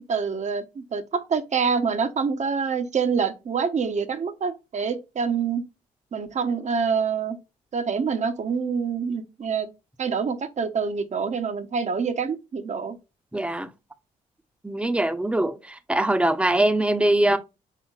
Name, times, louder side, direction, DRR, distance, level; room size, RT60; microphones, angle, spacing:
voice 1, 0.1-5.6 6.1-7.4 7.7-9.7 10.0-13.0, right 5 dB, 50° right, 0.9 m, -26 dB
voice 2, 13.3-13.7 14.6-17.4, right 1 dB, 5° right, 0.7 m, -22 dB
5.7 x 3.8 x 2.4 m
cardioid pair, 65°, 15 cm